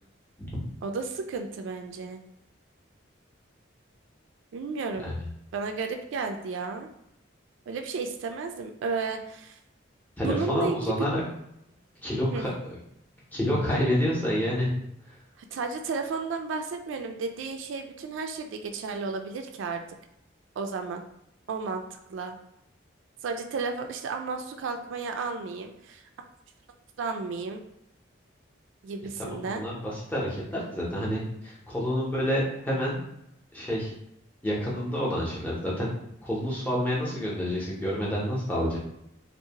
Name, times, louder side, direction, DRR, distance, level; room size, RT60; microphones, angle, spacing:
voice 1, 0.8-2.2 4.5-5.1 5.5-6.9 7.7-9.6 10.2-10.9 12.3-12.5 15.4-19.8 20.6-21.0 21.5-21.8 22.1-22.4 23.2-26.0 27.0-27.6 28.8-29.6, right 4 dB, 75° right, 5 dB, 0.3 m, -33 dB
voice 2, 10.2-11.2 12.0-12.5 13.3-14.7 15.0-15.1 29.2-33.0 33.5-33.9 34.4-35.9 36.2-38.8, equal, 10° left, -6 dB, 0.6 m, -28 dB
2.6 x 2.0 x 2.8 m, 0.80 s
head